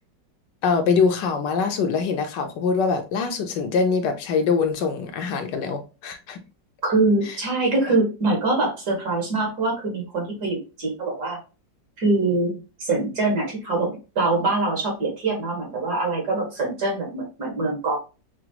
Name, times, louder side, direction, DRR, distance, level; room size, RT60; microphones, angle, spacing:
voice 1, 0.6-6.4 7.3-7.4, left 5 dB, 75° left, 1.3 m, -23 dB
voice 2, 6.8-11.4 12.0-12.5 12.8-18.0, right 2 dB, 65° right, 2.1 m, -24 dB
5.9 x 2.1 x 2.8 m
omnidirectional pair, 1.9 m